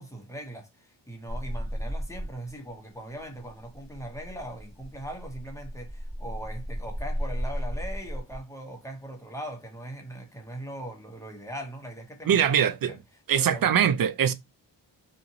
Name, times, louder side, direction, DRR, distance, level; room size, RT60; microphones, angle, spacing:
voice 1, 0.0-13.0 13.3-14.0, right 1 dB, 5° left, 0.9 m, -40 dB
sound 1, 1.3-2.7 3.0-8.4 10.1-10.6, equal, 20° right, 1.1 m, -34 dB
voice 2, 12.3-13.0 13.3-14.3, right 9 dB, 50° right, 0.5 m, -22 dB
2.8 x 2.5 x 2.8 m
cardioid pair, 55°, 45 cm